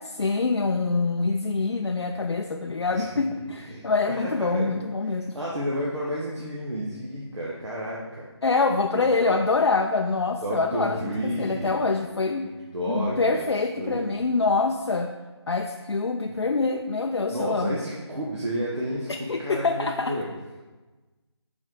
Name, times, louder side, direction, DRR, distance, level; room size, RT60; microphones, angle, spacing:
voice 1, 0.0-5.4 8.4-12.5 12.9-15.1 15.5-17.8 19.1-20.2, left 3 dB, 65° left, 4 dB, 0.4 m, -25 dB
voice 2, 3.7-4.7 5.3-8.3 8.9-9.4 10.4-11.8 12.7-13.5 13.8-14.1 16.2-16.3 17.3-20.3, equal, 85° right, -5 dB, 1.3 m, -31 dB
7.6 x 4.4 x 3.8 m, 1.2 s
figure-of-eight pair, 175°, 15 cm